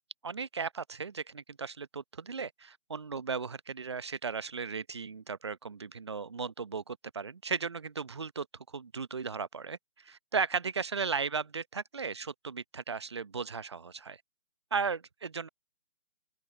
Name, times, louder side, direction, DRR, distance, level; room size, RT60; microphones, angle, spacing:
voice 1, 0.2-14.2 14.7-15.5, right 5 dB, 25° right, 0.8 m, -36 dB
open air
figure-of-eight pair, 155°, 36 cm